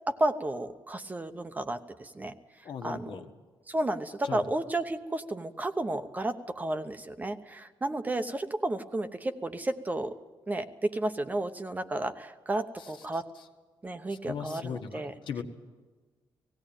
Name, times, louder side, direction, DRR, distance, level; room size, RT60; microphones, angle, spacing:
voice 1, 0.1-2.3 2.8-3.2 3.7-10.1 10.5-13.3 13.8-15.1, right 1 dB, 20° right, 9 dB, 0.8 m, -32 dB
voice 2, 2.6-3.3 4.2-4.4 12.8-12.9 13.3-13.4 14.1-15.4, left 7 dB, 65° left, 5 dB, 1.5 m, -38 dB
17.5 x 17.0 x 9.1 m, 1.3 s
cardioid pair, 140°, 9 cm